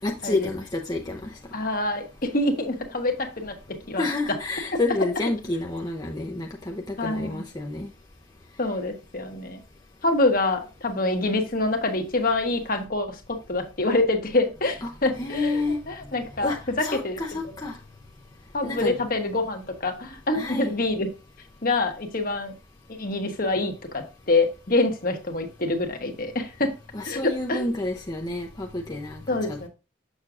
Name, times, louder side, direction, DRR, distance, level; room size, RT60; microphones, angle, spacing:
voice 1, 0.0-1.3 4.0-7.9 14.8-14.9 15.2-15.8 16.4-17.7 18.6-18.9 20.3-20.7 26.9-29.2 29.5-29.7, left 2 dB, 20° left, 1 dB, 0.6 m, -29 dB
voice 2, 1.5-4.1 4.7-4.8 7.0-7.4 8.6-9.6 10.0-17.2 18.5-21.1 21.6-22.5 23.0-26.7 27.1-27.7 29.3-29.7, left 2 dB, 45° left, 5 dB, 1.1 m, -26 dB
7.2 x 6.5 x 2.5 m, 0.31 s
head